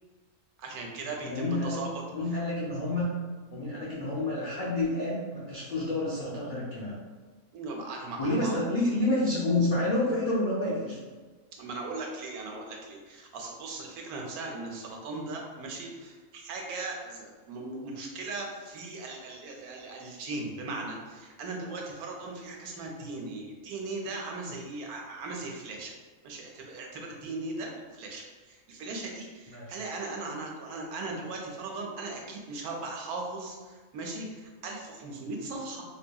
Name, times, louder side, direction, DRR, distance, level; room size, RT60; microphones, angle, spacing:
voice 1, 0.6-1.9 7.5-8.6 11.6-25.9 26.2-35.8, right 3 dB, 85° right, 0 dB, 1.1 m, -38 dB
voice 2, 1.2-3.2 3.5-7.0 8.2-11.0 29.5-29.7, left 2 dB, 60° left, -9 dB, 0.4 m, -29 dB
2.7 x 2.7 x 2.2 m, 1.4 s
omnidirectional pair, 1.5 m